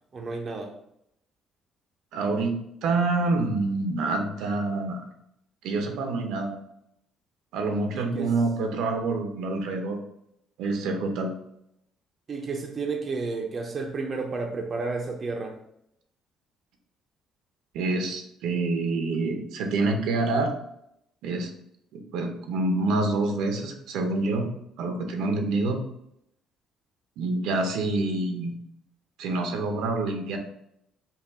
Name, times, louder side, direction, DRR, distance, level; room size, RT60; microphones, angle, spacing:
voice 1, 0.1-0.7 7.9-8.3 12.3-15.6, right 3 dB, 35° right, 0.6 m, -31 dB
voice 2, 2.1-2.5 2.8-5.0 5.6-6.5 7.5-10.0 10.6-11.3 17.7-20.5 21.2-21.5 21.9-24.5 24.8-25.8 27.2-28.5 29.2-30.4, right 3 dB, 85° right, 0.8 m, -27 dB
5.7 x 2.4 x 3.6 m
cardioid pair, 135°, 0 cm